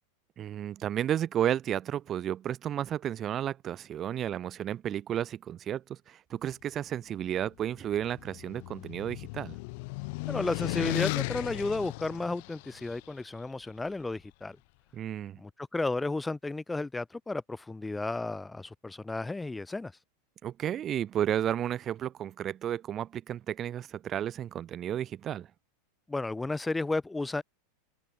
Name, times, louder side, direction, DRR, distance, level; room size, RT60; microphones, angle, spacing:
voice 1, 0.4-9.6 14.9-15.4 20.4-25.5, right 10 dB, 35° right, 0.7 m, -32 dB
sound 1, 7.7-13.0, left 27 dB, 60° left, 4.9 m, -35 dB
voice 2, 10.3-14.6 15.4-19.9 26.1-27.4, left 2 dB, 10° left, 1.6 m, -33 dB
hypercardioid pair, 100°, 0 cm